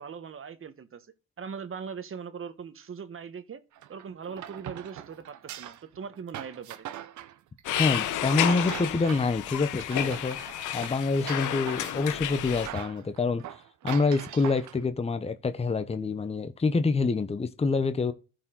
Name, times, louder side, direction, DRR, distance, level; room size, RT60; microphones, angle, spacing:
voice 1, 0.0-3.6 3.9-6.9, right 6 dB, 45° right, 1.2 m, -40 dB
sound 1, 3.7-9.4 9.7-12.2 12.5-14.8, right 12 dB, 70° right, 0.8 m, -42 dB
sound 2, 7.6-12.7, left 11 dB, 80° left, 1.1 m, -31 dB
voice 2, 7.8-10.4 10.7-13.4 13.8-18.1, left 4 dB, 20° left, 0.9 m, -26 dB
14.0 x 4.8 x 3.8 m
cardioid pair, 90°, 30 cm